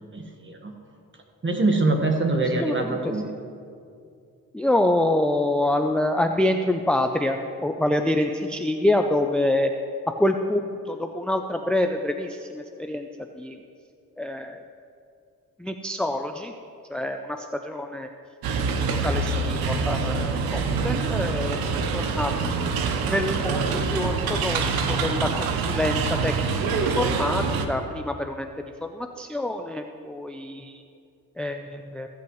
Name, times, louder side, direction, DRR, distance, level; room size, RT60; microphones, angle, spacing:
voice 1, 0.1-0.7 1.4-3.3, right 2 dB, 35° right, 3 dB, 1.5 m, -24 dB
voice 2, 2.6-3.0 4.5-9.7 10.2-13.1 13.4-13.6 14.2-14.6 15.6-16.5 16.9-18.1 18.7-21.6 21.9-22.5 23.1-28.5 28.8-30.8 31.4-32.1, left 1 dB, 5° left, 5 dB, 0.4 m, -26 dB
sound 1, 18.4-27.7, right 4 dB, 90° right, 0.8 m, -25 dB
15.5 x 8.4 x 3.1 m, 2.4 s
cardioid pair, 70°, 35 cm